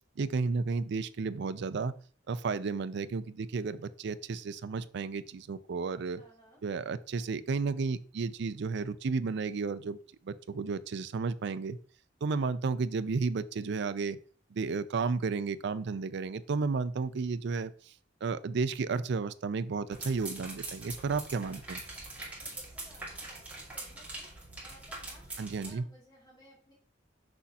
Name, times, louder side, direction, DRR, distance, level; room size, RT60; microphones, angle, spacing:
voice 1, 0.2-2.0 2.3-6.2 6.6-10.0 10.2-11.8 12.2-14.2 14.5-17.9 18.2-21.8 25.4-25.9, right 4 dB, 65° right, 14 dB, 0.4 m, -32 dB
voice 2, 6.2-6.6 12.3-12.6 22.3-26.7, equal, 20° left, -5 dB, 2.7 m, -59 dB
sound 1, 19.9-25.7, right 2 dB, 10° right, 2.1 m, -43 dB
6.2 x 5.7 x 2.8 m, 0.42 s
head